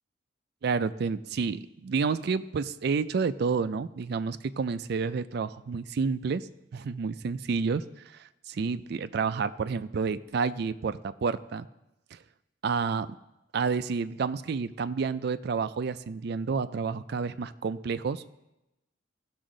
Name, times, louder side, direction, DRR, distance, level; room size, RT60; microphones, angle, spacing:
voice 1, 0.6-7.8 8.5-11.7 12.1-12.2 12.6-13.1 13.5-18.2, right 5 dB, 55° right, 13 dB, 0.4 m, -30 dB
15.5 x 6.2 x 3.8 m, 0.94 s
head